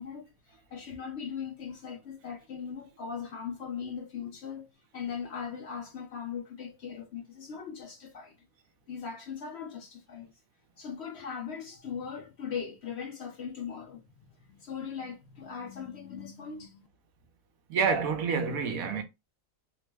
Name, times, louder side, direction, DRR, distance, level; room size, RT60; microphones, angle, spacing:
voice 1, 0.0-4.7 4.9-8.4 8.9-10.3 10.8-16.8, left 7 dB, 60° left, 0.8 m, -39 dB
voice 2, 17.7-19.0, right 5 dB, 75° right, 1.1 m, -28 dB
3.0 x 2.0 x 3.2 m
omnidirectional pair, 1.5 m